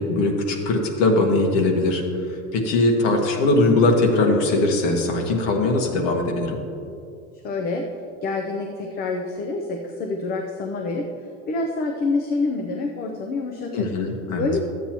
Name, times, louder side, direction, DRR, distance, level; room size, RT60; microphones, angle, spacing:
voice 1, 0.0-2.0 2.5-6.6 13.7-14.5, left 2 dB, 70° left, 1 dB, 1.5 m, -20 dB
voice 2, 7.4-7.8 8.2-11.1 11.5-13.9 14.4-14.6, left 3 dB, 30° left, 2 dB, 0.5 m, -27 dB
13.0 x 8.3 x 3.0 m, 2.6 s
cardioid pair, 180°, 31 cm